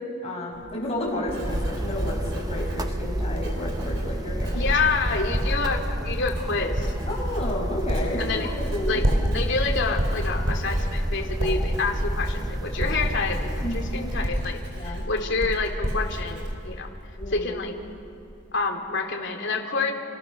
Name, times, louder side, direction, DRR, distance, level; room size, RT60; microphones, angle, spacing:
voice 1, 0.2-4.7 7.1-8.2 8.7-9.0 9.3-9.4 13.6-13.8 14.7-15.1 17.2-17.5, left 1 dB, 30° left, -2 dB, 7.4 m, -31 dB
Writing, 0.5-17.6 17.9-18.3, equal, 60° right, 4.6 m, -30 dB
sound 1, 1.4-14.2, right 1 dB, 20° right, 0.8 m, -31 dB
voice 2, 4.5-6.9 8.2-8.5 8.8-9.0 9.3-16.9 17.3-17.7 18.5-19.9, left 4 dB, 60° left, 2 dB, 3.2 m, -28 dB
29.5 x 29.0 x 6.8 m, 2.9 s
head